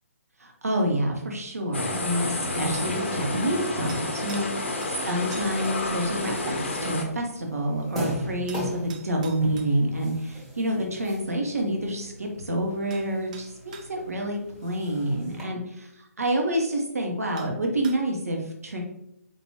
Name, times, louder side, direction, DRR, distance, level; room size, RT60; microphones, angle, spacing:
voice 1, 0.4-15.9 16.2-18.8, right 1 dB, 65° right, 1 dB, 1.0 m, -28 dB
sound 1, 1.7-7.0, left 2 dB, 45° left, 0.7 m, -30 dB
sound 2, 2.7-2.9 3.9-4.5 4.8-5.0 5.3-5.8 8.5-9.7 12.3-12.4 12.9-13.1 13.3-13.9 15.5-15.6 16.6-16.7 17.4-17.5 17.8-18.2, right 6 dB, 25° right, 0.4 m, -45 dB
sound 3, 6.3-15.4, right 1 dB, ahead, 1.0 m, -39 dB
4.6 x 2.6 x 2.9 m, 0.78 s
figure-of-eight pair, 140°, 9 cm